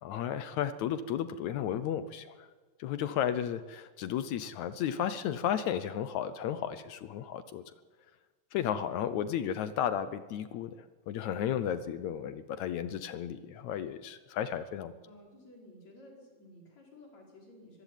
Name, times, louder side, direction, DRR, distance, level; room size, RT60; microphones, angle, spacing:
voice 1, 0.0-2.5 2.8-7.6 8.5-10.7 11.1-14.9, left 9 dB, 75° left, 13 dB, 1.8 m, -33 dB
voice 2, 15.0-17.8, left 1 dB, 50° left, 0 dB, 6.1 m, -54 dB
23.5 x 15.5 x 9.1 m, 1.4 s
omnidirectional pair, 4.0 m